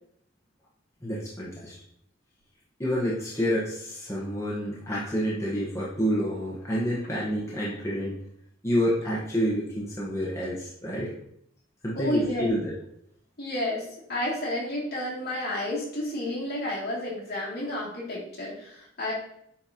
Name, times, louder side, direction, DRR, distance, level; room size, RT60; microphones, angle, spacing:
voice 1, 1.0-1.7 2.8-8.2 8.6-11.1 11.8-12.7, equal, 15° left, -7 dB, 1.1 m, -28 dB
voice 2, 12.0-12.5 13.4-19.1, left 1 dB, 55° left, -6 dB, 2.5 m, -31 dB
8.6 x 3.9 x 2.9 m, 0.71 s
head